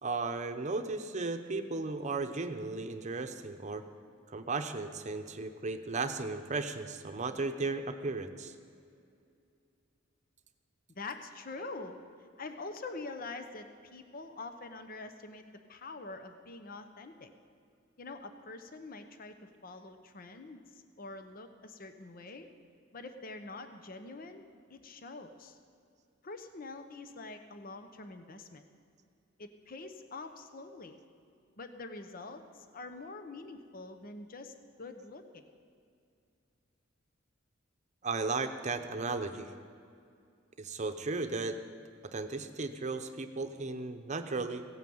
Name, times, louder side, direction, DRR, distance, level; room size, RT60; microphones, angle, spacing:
voice 1, 0.0-3.8 4.3-8.5 38.0-39.5 40.6-41.6 42.0-44.7, right 3 dB, 40° right, 7 dB, 0.8 m, -35 dB
voice 2, 10.9-12.0 12.4-17.3 18.0-22.5 22.9-24.4 24.7-25.6 26.2-28.7 29.4-31.0 31.6-35.4, left 3 dB, 50° left, 8 dB, 0.8 m, -45 dB
16.5 x 9.1 x 7.8 m, 2.4 s
head